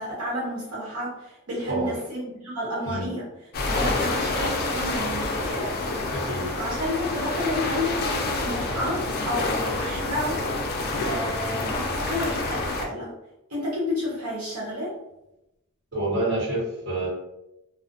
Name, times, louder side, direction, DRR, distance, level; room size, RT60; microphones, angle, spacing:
voice 1, 0.0-3.3 3.7-5.8 6.5-10.4 11.0-13.1 13.5-14.9, left 1 dB, 85° right, -7 dB, 0.9 m, -31 dB
sound 1, 3.5-12.9, left 2 dB, 45° left, 0.3 m, -28 dB
voice 2, 6.1-6.5 15.9-17.1, right 1 dB, 50° right, -7 dB, 1.2 m, -27 dB
2.4 x 2.0 x 2.5 m, 0.89 s
head